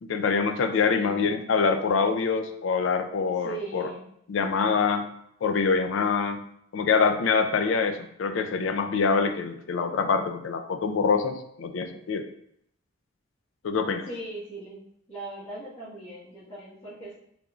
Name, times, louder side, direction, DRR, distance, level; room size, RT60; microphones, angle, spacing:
voice 1, 0.0-3.9 4.3-5.1 5.4-6.4 6.7-12.2 13.6-14.0, left 5 dB, 85° left, 8 dB, 0.4 m, -25 dB
voice 2, 0.8-1.2 3.4-4.0 14.0-14.8 15.1-17.1, right 2 dB, 35° left, -14 dB, 1.5 m, -39 dB
3.8 x 3.4 x 2.4 m, 0.72 s
head